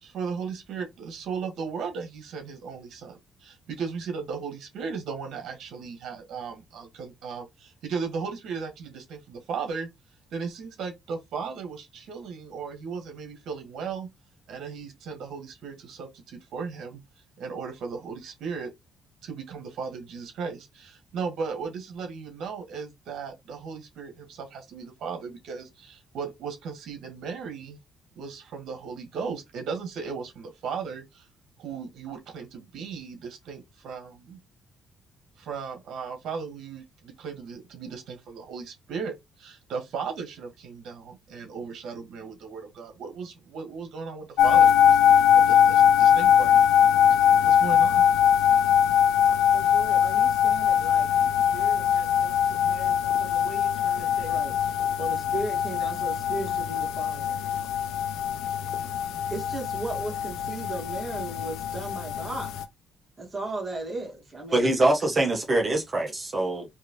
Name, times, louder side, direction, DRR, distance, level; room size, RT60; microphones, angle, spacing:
voice 1, 0.0-9.9 10.3-14.1 14.5-17.0 17.4-18.7 19.2-27.8 28.1-31.3 31.6-34.4 35.4-48.1, right 5 dB, 75° right, 1.6 m, -36 dB
sound 1, 44.4-62.6, left 9 dB, 90° left, 0.5 m, -22 dB
voice 2, 49.5-51.1 51.5-57.4 59.3-62.6 63.2-64.8, right 2 dB, 20° right, 2.3 m, -37 dB
voice 3, 64.5-66.7, right 2 dB, 35° right, 1.2 m, -24 dB
4.6 x 3.0 x 3.0 m
cardioid pair, 90°, 0 cm